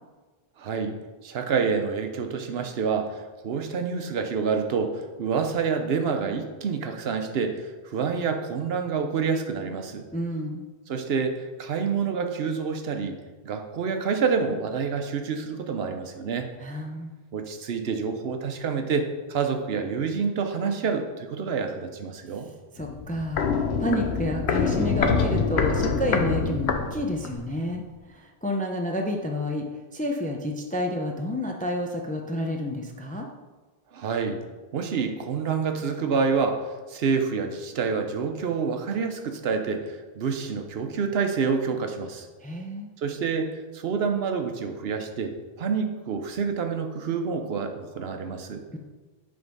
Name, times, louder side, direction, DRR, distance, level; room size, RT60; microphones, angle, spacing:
voice 1, 0.6-1.0 1.2-10.1 10.9-13.2 13.4-16.5 17.3-22.5 33.9-34.4 34.7-42.3 43.0-48.6, right 5 dB, 75° right, 6 dB, 0.9 m, -28 dB
voice 2, 10.1-10.6 16.6-17.2 22.3-27.8 28.1-29.7 29.9-33.3 42.4-42.9 48.7-48.8, left 1 dB, 10° left, 2 dB, 0.4 m, -30 dB
Walk footsteps, 22.8-27.5 27.8-27.9, left 5 dB, 85° left, 0.9 m, -25 dB
7.5 x 3.5 x 5.3 m, 1.3 s
omnidirectional pair, 1.1 m